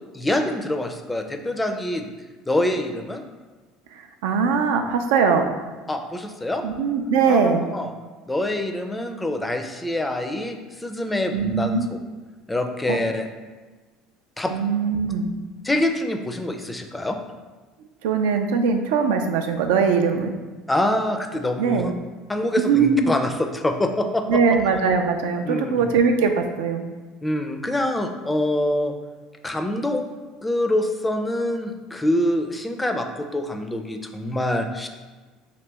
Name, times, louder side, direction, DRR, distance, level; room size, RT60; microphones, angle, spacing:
voice 1, 0.1-2.1 2.5-3.2 5.9-6.7 7.3-7.9 8.3-11.8 12.5-13.3 14.4-14.5 15.6-17.2 20.7-21.8 22.3-24.4 25.5-25.8 27.2-28.9 29.4-30.0 30.4-34.9, left 1 dB, 10° left, 5 dB, 0.4 m, -25 dB
voice 2, 3.9-5.4 6.6-7.7 11.3-11.9 12.9-13.0 14.5-15.3 18.0-20.3 21.6-21.9 22.6-23.1 24.3-26.8, right 5 dB, 85° right, 5 dB, 0.3 m, -21 dB
3.0 x 2.8 x 3.3 m, 1.3 s
supercardioid pair, 90°, 0 cm